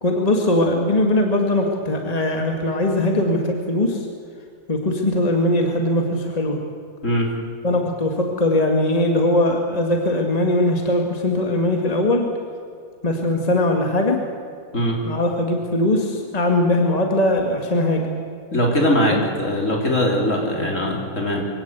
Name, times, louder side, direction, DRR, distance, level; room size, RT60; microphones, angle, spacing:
voice 1, 0.0-4.1 4.7-6.6 7.6-12.3 13.0-14.2 15.0-18.1 19.1-19.2, left 1 dB, 25° left, 2 dB, 2.0 m, -20 dB
voice 2, 18.5-21.5, equal, 55° left, 0 dB, 4.0 m, -21 dB
23.5 x 17.0 x 8.2 m, 2.3 s
omnidirectional pair, 1.6 m